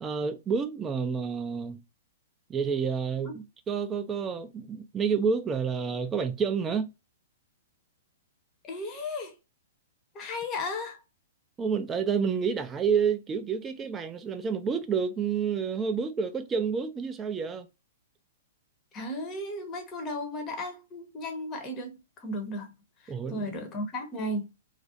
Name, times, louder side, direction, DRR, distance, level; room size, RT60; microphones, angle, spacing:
voice 1, 0.0-1.8 2.5-6.9 11.6-17.7 23.1-23.6, right 6 dB, 15° right, 0.4 m, -29 dB
voice 2, 8.6-9.3 10.1-11.0 18.9-22.7 23.0-24.5, left 1 dB, 25° left, 0.7 m, -35 dB
2.4 x 2.0 x 2.6 m
hypercardioid pair, 130°, 0 cm